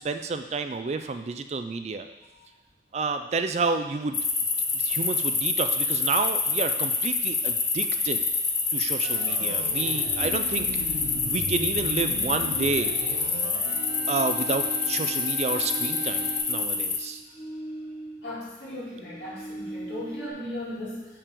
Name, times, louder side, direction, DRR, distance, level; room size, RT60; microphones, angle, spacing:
voice 1, 0.0-2.1 2.9-4.2 4.7-8.2 8.7-10.7 11.3-12.9 14.1-17.2, right 4 dB, 35° right, 8 dB, 0.3 m, -30 dB
sound 1, 4.1-17.0, left 4 dB, 20° left, 0.6 m, -27 dB
Organ, 9.0-16.4, left 3 dB, 65° left, 0.5 m, -38 dB
sound 2, 10.7-12.0 12.3-18.5 18.7-20.3, right 1 dB, 40° left, 1.8 m, -41 dB
voice 2, 18.2-21.1, left 1 dB, 80° left, -7 dB, 2.4 m, -36 dB
6.7 x 5.7 x 3.6 m, 1.1 s
head